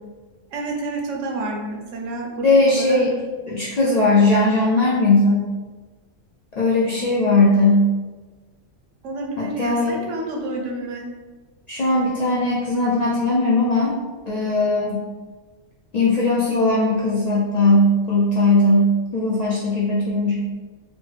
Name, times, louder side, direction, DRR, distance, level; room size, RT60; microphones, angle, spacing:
voice 1, 0.5-3.0 9.0-11.1, right 2 dB, 90° right, 0 dB, 1.0 m, -29 dB
voice 2, 2.4-3.1 3.5-5.5 6.6-7.9 9.4-10.0 11.7-14.0 14.3-15.0 15.9-20.4, left 2 dB, 65° left, -7 dB, 0.4 m, -18 dB
3.2 x 2.0 x 3.1 m, 1.3 s
omnidirectional pair, 1.2 m